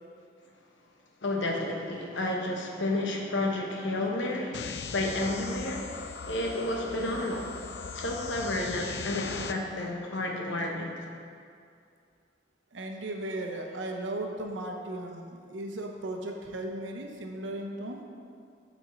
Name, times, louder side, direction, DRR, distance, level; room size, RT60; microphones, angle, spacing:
voice 1, 1.2-7.5 7.9-11.0, left 1 dB, 80° left, 1 dB, 0.9 m, -31 dB
sound 1, 4.5-9.5, left 5 dB, 65° left, 0.3 m, -39 dB
voice 2, 12.7-18.0, right 1 dB, 85° right, 2 dB, 0.8 m, -36 dB
8.1 x 4.4 x 4.3 m, 2.3 s
head